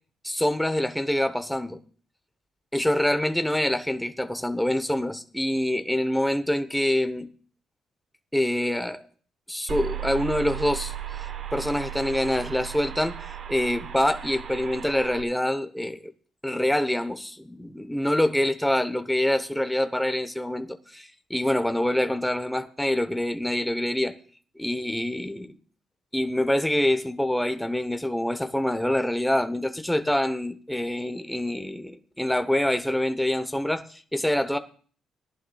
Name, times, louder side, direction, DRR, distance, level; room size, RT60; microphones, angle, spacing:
voice 1, 0.2-1.8 2.7-7.3 8.3-9.0 9.5-16.0 16.4-24.1 24.6-25.5 26.1-34.6, left 1 dB, 5° left, 0.8 m, -26 dB
sound 1, 9.7-15.2, right 10 dB, 60° right, 1.0 m, -35 dB
18.5 x 11.0 x 2.3 m
cardioid pair, 90°, 0 cm